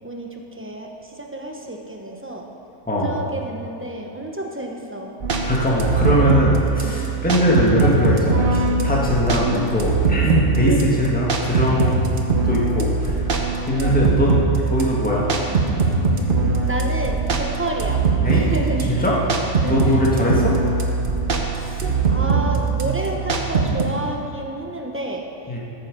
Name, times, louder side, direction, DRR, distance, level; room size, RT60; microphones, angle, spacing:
voice 1, 0.0-2.5 3.0-5.2 5.8-5.9 6.7-7.0 8.7-9.0 9.4-9.7 10.7-11.0 13.7-14.0 16.2-16.3 16.7-18.9 19.6-20.5 21.4-25.3, right 1 dB, 10° right, 1 dB, 0.8 m, -31 dB
voice 2, 2.9-3.2 5.4-12.2 12.4-13.3 13.7-15.2 18.2-18.5 18.9-19.2 19.6-20.5 25.5-25.6, left 1 dB, 5° left, -5 dB, 1.7 m, -21 dB
sound 1, 5.2-23.8, right 4 dB, 45° right, 1.0 m, -21 dB
14.0 x 7.9 x 5.3 m, 2.8 s
omnidirectional pair, 1.5 m